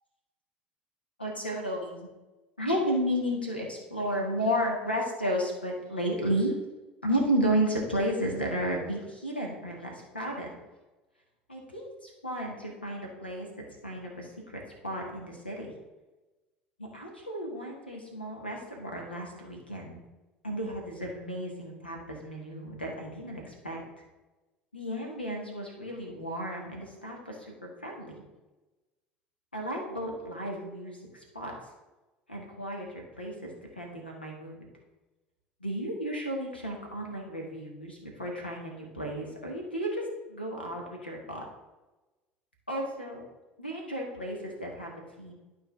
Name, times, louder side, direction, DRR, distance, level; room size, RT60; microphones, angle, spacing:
voice 1, 1.2-2.1 2.6-6.5 7.0-10.5 11.5-13.5 13.8-15.7 16.8-20.0 20.4-23.8 24.7-27.5 27.8-28.2 29.5-31.5 32.3-34.6 35.6-41.4 42.7-43.2 43.6-45.3, equal, 90° left, 0 dB, 1.6 m, -33 dB
11.5 x 5.0 x 3.5 m, 1.1 s
figure-of-eight pair, 65°, 5 cm